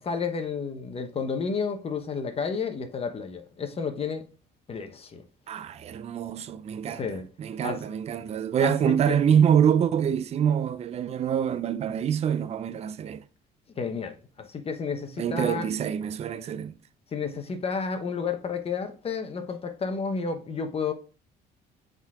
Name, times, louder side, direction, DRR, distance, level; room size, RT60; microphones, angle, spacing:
voice 1, 0.0-4.2 4.7-5.2 6.9-7.3 7.6-7.8 8.6-9.2 13.8-15.7 17.1-20.9, left 5 dB, 35° left, 1.0 m, -31 dB
voice 2, 5.5-7.0 7.4-13.2 15.2-16.8, right 8 dB, 40° right, 0.5 m, -25 dB
7.1 x 3.8 x 3.6 m
cardioid pair, 110°, 17 cm